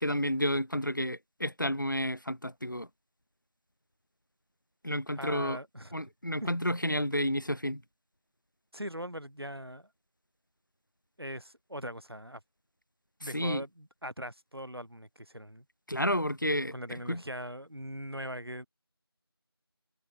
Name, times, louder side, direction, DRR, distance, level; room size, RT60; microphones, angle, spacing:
voice 1, 0.0-2.9 4.8-5.6 5.9-7.8 13.3-13.6 15.9-17.2, equal, 50° left, 0.9 m, -31 dB
voice 2, 5.2-5.9 6.4-6.5 8.7-9.9 11.2-12.4 13.2-15.6 16.7-18.7, equal, 70° right, 4.9 m, -41 dB
figure-of-eight pair, 180°, 13 cm